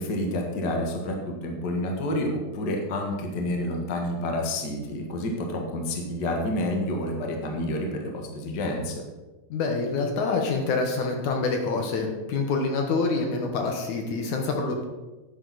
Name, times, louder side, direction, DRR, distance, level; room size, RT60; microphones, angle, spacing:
voice 1, 0.0-9.0, left 1 dB, 50° left, 1 dB, 1.3 m, -29 dB
voice 2, 9.5-14.8, left 3 dB, 65° left, 2 dB, 2.4 m, -26 dB
10.5 x 10.0 x 4.1 m, 1.2 s
omnidirectional pair, 4.2 m